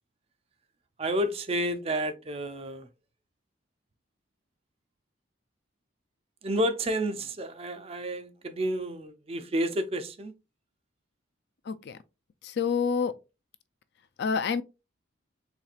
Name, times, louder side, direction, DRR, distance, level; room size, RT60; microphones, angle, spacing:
voice 1, 1.0-2.9 6.4-10.3, right 1 dB, 30° right, 0.4 m, -30 dB
voice 2, 11.7-12.0 12.4-13.1 14.2-14.6, left 6 dB, 55° left, 0.4 m, -27 dB
4.2 x 3.2 x 2.4 m
head